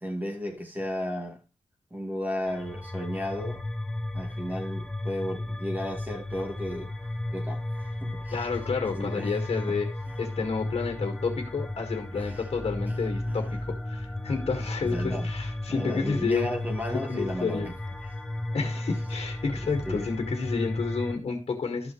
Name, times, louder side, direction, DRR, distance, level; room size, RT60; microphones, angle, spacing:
voice 1, 0.0-1.4 1.9-3.6 4.1-6.9 7.3-8.5 9.0-9.4 12.2-12.4 12.9-13.0 13.3-13.6 14.8-15.3 15.7-17.7 18.6-18.7 19.6-20.1, left 1 dB, 15° right, 2.1 m, -34 dB
sound 1, 2.4-21.2, left 1 dB, 5° left, 0.9 m, -34 dB
voice 2, 8.3-9.9 10.2-16.5 16.9-17.7 18.5-21.9, left 4 dB, 60° left, 1.7 m, -30 dB
13.0 x 5.6 x 3.1 m
wide cardioid pair, 95°, 11 cm